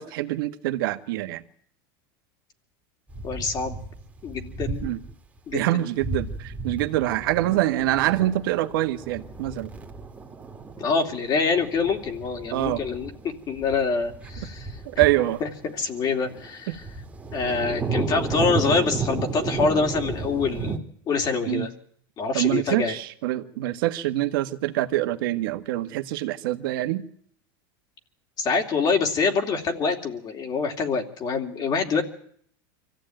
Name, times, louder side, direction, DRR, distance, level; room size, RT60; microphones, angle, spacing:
voice 1, 0.0-1.4 4.8-5.0 5.5-9.7 12.5-12.8 14.8-15.4 16.7-16.8 21.5-21.7 22.3-27.0, right 15 dB, 75° right, 9 dB, 1.6 m, -25 dB
sound 1, 3.1-5.1 5.5-5.6 6.0-20.8, right 4 dB, 15° right, 2.4 m, -33 dB
voice 2, 3.2-3.8 4.2-4.9 5.5-5.8 10.8-15.0 15.4-16.8 17.3-20.8 21.1-21.7 22.2-23.0 28.4-32.0, left 4 dB, 35° left, 4 dB, 2.8 m, -25 dB
24.5 x 15.0 x 9.2 m, 0.65 s
supercardioid pair, 125°, 12 cm